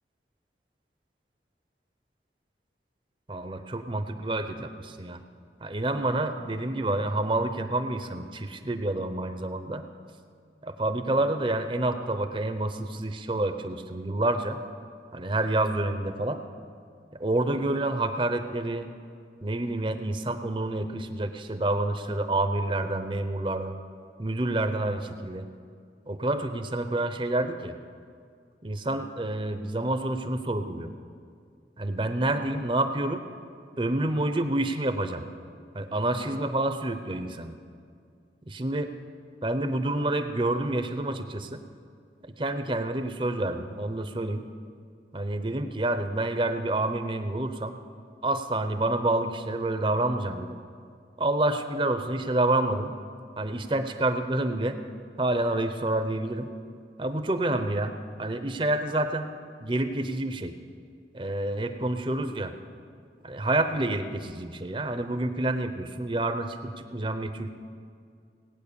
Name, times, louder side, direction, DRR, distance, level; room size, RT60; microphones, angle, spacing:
voice 1, 3.3-5.2 5.6-9.9 10.6-14.6 15.1-16.4 17.1-18.9 19.4-23.8 24.2-25.5 26.1-27.7 28.6-30.9 31.8-33.2 33.8-35.3 35.7-37.5 38.5-38.9 39.4-41.6 42.4-44.4 45.1-47.7 48.2-50.5 51.2-52.9 53.4-54.8 55.2-56.5 57.0-59.3 59.6-60.5 61.1-62.5 63.2-67.5, right 2 dB, 30° right, 8 dB, 0.6 m, -28 dB
18.0 x 9.0 x 6.9 m, 2.3 s
head